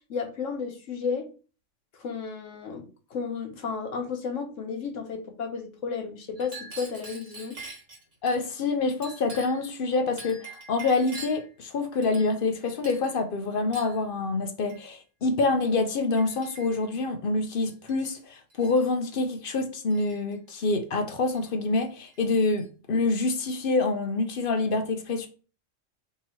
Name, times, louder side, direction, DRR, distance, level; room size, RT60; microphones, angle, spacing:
voice 1, 0.1-1.3 1.9-7.6, left 5 dB, 85° left, 1.3 m, -33 dB
Chink clink, 6.4-8.4 9.0-9.7 10.2-11.5 12.0-12.5 12.8-13.1 13.7-14.0 14.7-14.9 15.6-15.8 16.2-16.9 17.6-18.2 18.5-18.9 19.9-20.6 21.3-21.5 21.8-22.7, right 3 dB, 85° right, 1.8 m, -45 dB
voice 2, 8.2-25.3, left 3 dB, 55° left, 0.7 m, -26 dB
3.6 x 2.9 x 4.3 m
omnidirectional pair, 1.3 m